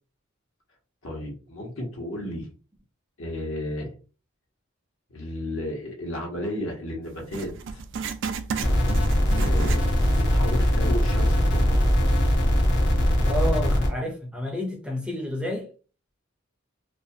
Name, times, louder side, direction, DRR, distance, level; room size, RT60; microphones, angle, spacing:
voice 1, 1.0-2.5 3.2-3.9 5.1-7.8 9.3-9.8 10.1-11.8, left 1 dB, 75° left, 1.1 m, -33 dB
Writing, 7.3-10.3 10.6-10.7 11.4-11.5, right 6 dB, 60° right, 0.3 m, -34 dB
sound 1, 8.6-13.9, equal, 55° left, 0.7 m, -21 dB
voice 2, 13.2-15.7, left 1 dB, 5° right, 0.5 m, -30 dB
2.5 x 2.3 x 2.7 m
head